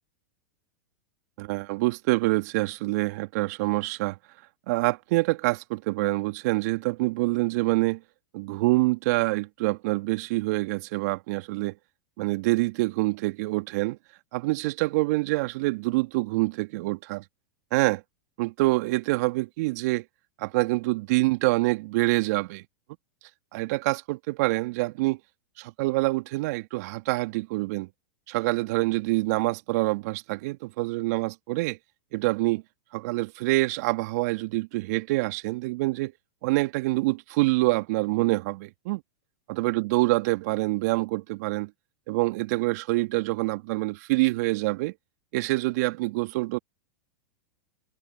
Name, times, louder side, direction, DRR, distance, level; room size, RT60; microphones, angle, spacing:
voice 1, 1.4-4.2 4.7-8.0 8.3-11.8 12.2-14.0 14.3-17.2 17.7-18.0 18.4-20.0 20.4-22.6 23.5-25.2 25.6-27.9 28.3-31.8 32.1-32.6 32.9-36.1 36.4-39.0 39.5-41.7 42.1-44.9 45.3-46.6, right 22 dB, 60° right, 2.6 m, -26 dB
hypercardioid pair, 100°, 10 cm